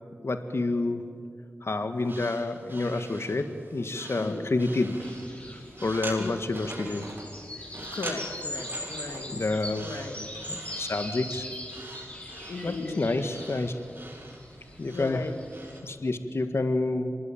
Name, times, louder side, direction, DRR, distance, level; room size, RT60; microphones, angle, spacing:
voice 1, 0.2-1.0 1.6-5.0 5.8-7.1 9.3-9.9 10.5-11.5 12.6-13.7 14.8-15.3 15.8-17.1, left 2 dB, 60° left, 8 dB, 1.7 m, -28 dB
sound 1, 2.0-15.8, right 2 dB, 45° right, 7.7 m, -44 dB
sound 2, 5.0-15.8, left 1 dB, 25° left, 5.2 m, -41 dB
voice 2, 7.9-9.4 9.8-10.2 12.5-13.1 14.9-15.3, left 3 dB, 85° left, 6 dB, 1.6 m, -36 dB
25.5 x 21.0 x 9.1 m, 2.2 s
cardioid pair, 50°, 5 cm